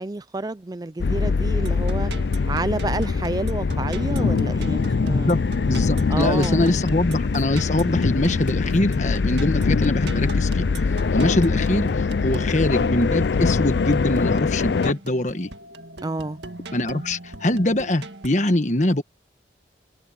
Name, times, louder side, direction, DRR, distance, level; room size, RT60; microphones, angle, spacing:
voice 1, 0.0-2.1 2.4-5.3 6.1-6.8 16.0-16.4, right 2 dB, 20° right, 0.4 m, -29 dB
sound 1, 1.0-14.9, left 4 dB, 65° left, 0.4 m, -23 dB
sound 2, 1.6-18.3, right 2 dB, 70° right, 1.8 m, -40 dB
voice 2, 5.0-5.4 5.7-10.6 11.1-15.5 16.7-19.0, left 1 dB, 40° left, 1.4 m, -23 dB
head